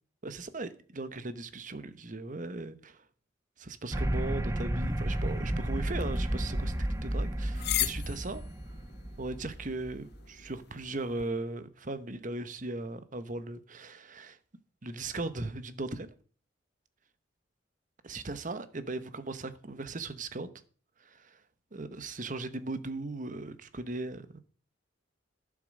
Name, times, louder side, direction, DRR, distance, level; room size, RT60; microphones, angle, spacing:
voice 1, 0.2-3.0 3.6-8.4 9.2-14.4 14.8-16.1 18.0-20.5 21.0-21.4 21.7-24.4, right 2 dB, 45° right, 1.1 m, -38 dB
sound 1, 3.9-10.4, right 1 dB, 15° right, 0.9 m, -32 dB
sound 2, 4.8-11.3, left 12 dB, 60° left, 1.0 m, -40 dB
11.5 x 7.4 x 6.4 m
head